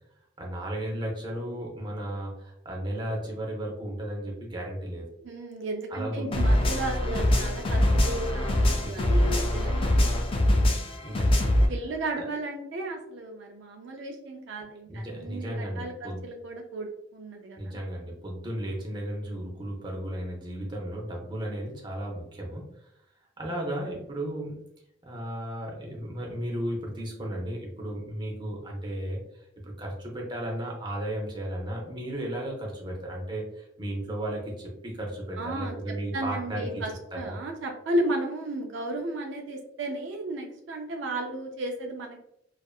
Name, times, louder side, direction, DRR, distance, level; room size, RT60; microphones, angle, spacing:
voice 1, 0.4-5.1 5.9-6.4 8.8-9.2 9.5-10.0 10.9-11.7 12.1-12.2 14.9-16.2 17.6-22.7 23.4-24.6 25.0-29.2 29.6-36.8 37.1-37.4, right 1 dB, 25° right, -1 dB, 0.6 m, -34 dB
voice 2, 5.2-10.2 11.7-17.8 35.4-35.7 36.1-36.9 37.2-42.2, right 1 dB, 70° right, 2 dB, 0.4 m, -34 dB
sound 1, 6.3-11.7, left 1 dB, 30° left, 0.3 m, -23 dB
2.6 x 2.4 x 2.3 m, 0.77 s
head